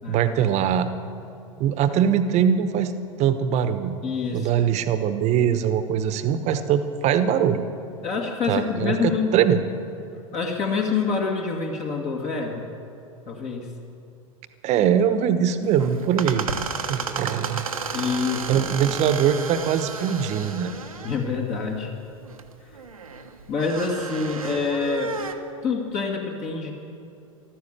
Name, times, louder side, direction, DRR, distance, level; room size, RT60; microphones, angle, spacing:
voice 1, 0.1-0.9 1.6-2.9 3.2-4.0 4.3-7.7 8.5-9.6 14.6-16.5 16.9-17.7 18.5-20.7, right 8 dB, 40° right, 11 dB, 1.1 m, -22 dB
voice 2, 4.0-4.5 8.0-9.3 10.3-12.7 13.3-13.7 17.9-19.0 21.0-21.9 22.6-22.8 23.5-25.2 25.6-26.7, left 5 dB, 40° left, 0 dB, 2.1 m, -26 dB
sound 1, 15.6-25.3, right 4 dB, 85° right, 1.1 m, -33 dB
15.0 x 13.0 x 6.7 m, 2.7 s
figure-of-eight pair, 85°, 17 cm